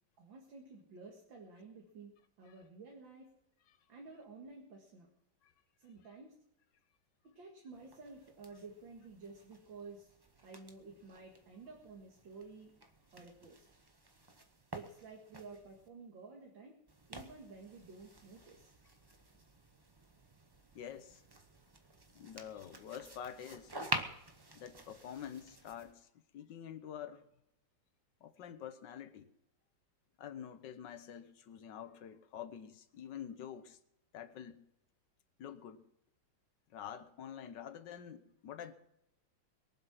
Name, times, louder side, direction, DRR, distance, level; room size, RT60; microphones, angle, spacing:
voice 1, 0.2-3.3 3.9-5.1 5.8-6.4 7.2-10.2 10.4-12.8 13.1-13.7 14.7-16.8 17.1-18.7, right 4 dB, 90° right, 2.6 m, -52 dB
sound 1, 7.7-15.9 16.9-25.9, right 2 dB, 15° right, 0.9 m, -48 dB
voice 2, 20.8-21.2 22.1-23.7 24.5-26.1 26.3-27.2 28.2-29.3 30.2-33.8 34.1-34.7 35.4-35.8 36.7-38.7, left 9 dB, 70° left, 1.6 m, -47 dB
22.5 x 7.9 x 6.0 m
omnidirectional pair, 2.0 m